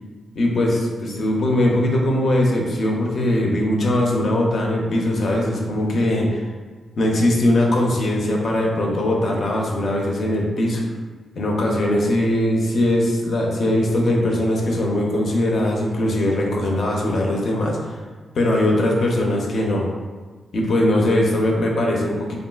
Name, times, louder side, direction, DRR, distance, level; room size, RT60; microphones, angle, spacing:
voice 1, 0.3-6.4 7.0-10.8 11.4-18.0 18.3-19.9 20.5-22.4, left 1 dB, 55° left, -1 dB, 0.5 m, -20 dB
3.2 x 2.3 x 2.3 m, 1.4 s
wide cardioid pair, 145°, 0 cm